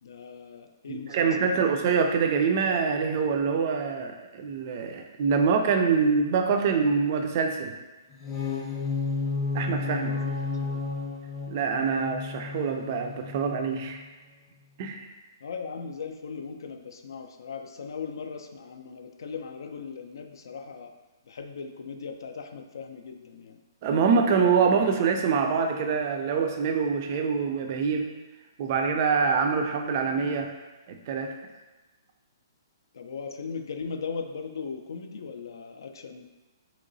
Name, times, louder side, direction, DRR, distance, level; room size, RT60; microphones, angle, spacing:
voice 1, 0.0-1.9 9.9-10.9 15.4-20.9 21.2-23.6 32.9-36.2, left 5 dB, 75° left, 7 dB, 0.3 m, -38 dB
voice 2, 0.9-7.7 9.5-10.1 11.5-14.0 14.8-15.1 23.8-28.1 28.6-30.5 30.9-31.3, right 5 dB, 40° right, 5 dB, 0.3 m, -25 dB
sound 1, 8.1-14.0, left 3 dB, 10° left, 0.6 m, -32 dB
3.0 x 2.8 x 2.6 m, 1.1 s
hypercardioid pair, 155°, 2 cm